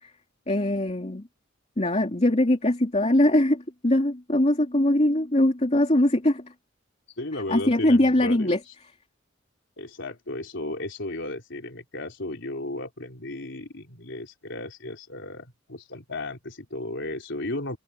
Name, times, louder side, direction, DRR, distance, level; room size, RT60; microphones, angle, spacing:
voice 1, 0.5-1.3 1.8-6.5 7.5-8.6, left 1 dB, 35° left, 2.8 m, -22 dB
voice 2, 7.2-8.7 9.8-17.8, left 2 dB, 65° left, 4.3 m, -35 dB
head